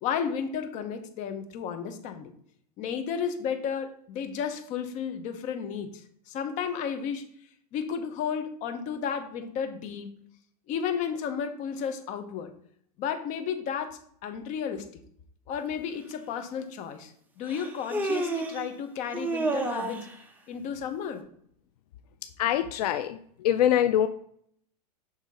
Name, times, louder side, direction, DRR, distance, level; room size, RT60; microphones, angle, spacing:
voice 1, 0.0-2.3 2.8-7.3 7.7-10.1 10.7-12.5 13.0-14.9 15.5-20.1 20.5-21.3, left 7 dB, 40° left, 7 dB, 1.0 m, -33 dB
Human voice, 16.1-16.2 17.5-18.7 19.1-20.1, right 2 dB, 10° right, 0.8 m, -30 dB
voice 2, 22.4-24.1, left 11 dB, 75° left, 10 dB, 0.5 m, -24 dB
6.5 x 3.5 x 5.4 m, 0.64 s
supercardioid pair, 140°, 20 cm